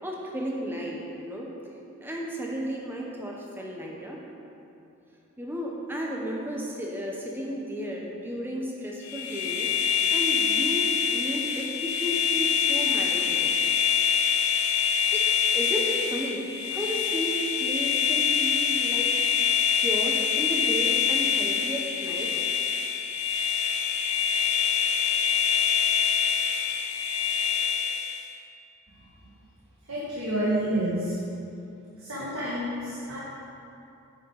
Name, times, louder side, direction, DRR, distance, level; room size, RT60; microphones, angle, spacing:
voice 1, 0.0-1.5 2.0-4.2 5.4-13.5 14.9-15.2 15.5-16.4 16.7-19.1 19.8-22.3, equal, 10° right, -2 dB, 1.1 m, -33 dB
sound 1, 9.1-28.3, left 6 dB, 80° left, 0.8 m, -25 dB
voice 2, 29.9-31.1 32.0-33.2, right 1 dB, 70° right, -9 dB, 1.8 m, -29 dB
9.4 x 7.8 x 4.9 m, 2.7 s
head